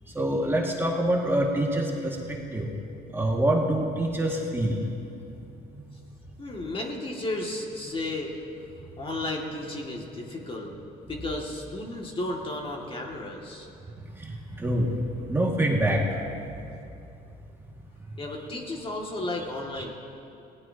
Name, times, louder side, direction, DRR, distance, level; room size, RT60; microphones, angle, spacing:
voice 1, 0.2-2.2 2.5-2.7 3.1-4.8 14.6-15.0 15.3-16.0 19.8-19.9, right 1 dB, 15° right, -2 dB, 2.0 m, -25 dB
voice 2, 6.4-8.3 9.0-10.7 11.1-13.7 18.2-19.9, left 2 dB, 30° left, 0 dB, 2.3 m, -33 dB
27.5 x 18.0 x 2.9 m, 2.7 s
cardioid pair, 110°, 17 cm